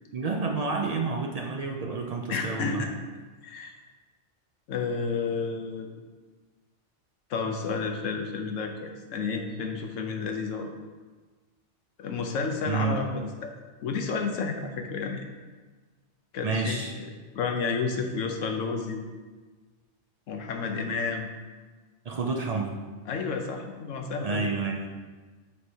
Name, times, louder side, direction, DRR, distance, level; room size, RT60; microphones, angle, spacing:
voice 1, 0.1-2.8 12.7-13.0 16.4-16.9 22.0-22.8 24.2-24.9, right 4 dB, 65° right, 1 dB, 0.3 m, -29 dB
voice 2, 2.3-2.9 3.4-3.7 4.7-5.9 7.3-10.7 12.0-13.5 13.8-15.2 16.3-19.0 20.3-21.3 23.1-24.5, left 4 dB, 85° left, 4 dB, 1.1 m, -31 dB
8.1 x 4.6 x 2.8 m, 1.4 s
omnidirectional pair, 1.3 m